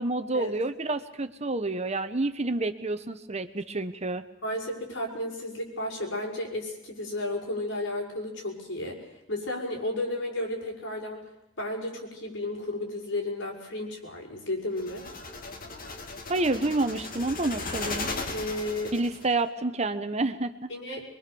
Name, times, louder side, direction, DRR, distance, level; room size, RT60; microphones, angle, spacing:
voice 1, 0.0-4.2 16.3-18.1 18.9-20.7, right 2 dB, 35° right, 10 dB, 1.1 m, -29 dB
voice 2, 4.4-11.3 11.6-15.1 18.3-19.1 20.7-21.0, left 1 dB, 75° left, -1 dB, 6.2 m, -33 dB
sound 1, 14.8-19.3, left 3 dB, 45° left, 2.3 m, -37 dB
24.5 x 22.5 x 7.1 m, 0.88 s
head